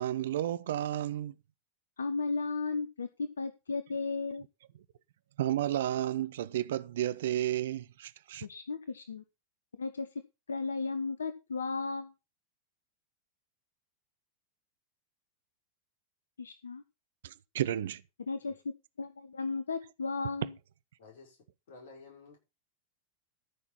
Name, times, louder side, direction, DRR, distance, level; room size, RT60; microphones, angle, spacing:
voice 1, 0.0-1.3 5.4-8.5 17.2-18.0, right 12 dB, 60° right, 0.7 m, -32 dB
voice 2, 2.0-4.4 8.4-9.2 9.8-10.1 10.5-12.1 16.4-16.8 18.3-20.5, left 4 dB, 70° left, 0.9 m, -35 dB
voice 3, 21.0-21.4 21.7-22.4, left 4 dB, 55° left, 5.9 m, -52 dB
14.0 x 6.1 x 5.6 m
figure-of-eight pair, 90°, 0 cm